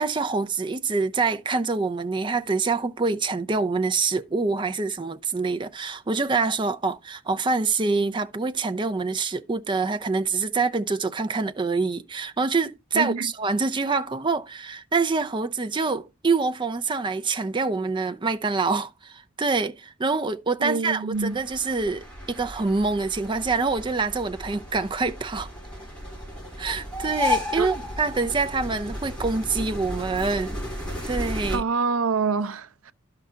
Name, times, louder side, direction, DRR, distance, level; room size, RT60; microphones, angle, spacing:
voice 1, 0.0-25.5 26.6-30.6 31.1-31.6, right 4 dB, 20° right, 0.5 m, -26 dB
voice 2, 12.9-13.3 20.6-21.4 27.6-27.7 31.5-32.9, right 4 dB, 75° right, 0.6 m, -26 dB
sound 1, 21.1-31.6, left 2 dB, 5° left, 3.2 m, -33 dB
11.5 x 5.7 x 3.6 m
head